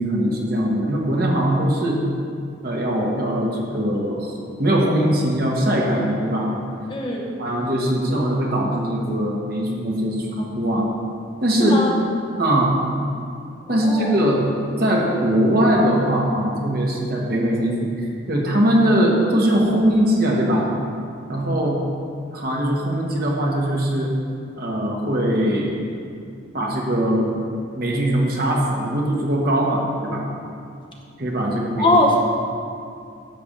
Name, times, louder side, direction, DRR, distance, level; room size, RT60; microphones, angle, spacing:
voice 1, 0.0-2.0 2.6-6.5 7.4-10.9 11.4-11.8 12.4-12.8 13.7-14.5 14.8-20.7 21.3-21.8 22.3-24.1 24.6-25.7 26.5-27.2 27.7-30.2 31.2-31.9, right 1 dB, 50° right, -2 dB, 1.2 m, -21 dB
voice 2, 6.9-7.3 11.6-11.9 13.6-14.2 31.8-32.2, left 1 dB, 25° left, -1 dB, 0.8 m, -20 dB
10.5 x 3.5 x 7.2 m, 2.4 s
head